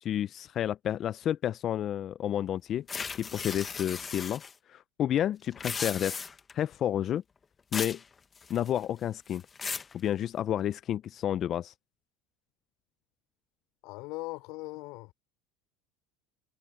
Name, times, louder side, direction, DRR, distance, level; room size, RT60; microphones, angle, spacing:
voice 1, 0.0-2.9 3.2-4.4 4.7-6.3 6.5-7.2 7.7-8.0 8.5-9.4 9.9-11.7, left 10 dB, 40° left, 0.5 m, -30 dB
sound 1, 2.9-4.5 5.5-6.5 7.7-8.0 8.4-8.8 9.3-9.9, left 5 dB, 20° left, 1.1 m, -36 dB
voice 2, 13.8-15.1, left 24 dB, 65° left, 3.7 m, -39 dB
supercardioid pair, 125°, 0 cm